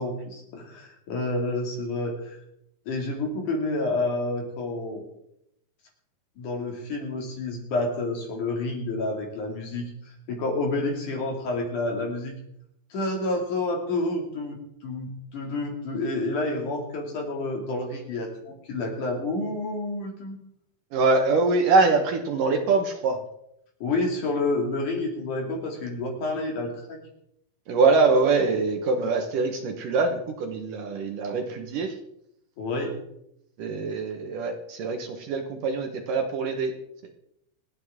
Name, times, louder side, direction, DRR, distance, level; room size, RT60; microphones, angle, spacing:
voice 1, 0.0-2.4 2.9-5.0 6.4-9.9 10.3-12.3 12.9-20.4 23.8-27.0 32.6-32.9, left 2 dB, 55° left, 1 dB, 3.8 m, -29 dB
voice 2, 20.9-23.2 27.7-31.9 33.6-36.7, right 3 dB, 65° right, 4 dB, 2.5 m, -23 dB
27.0 x 9.8 x 3.7 m, 0.78 s
omnidirectional pair, 4.6 m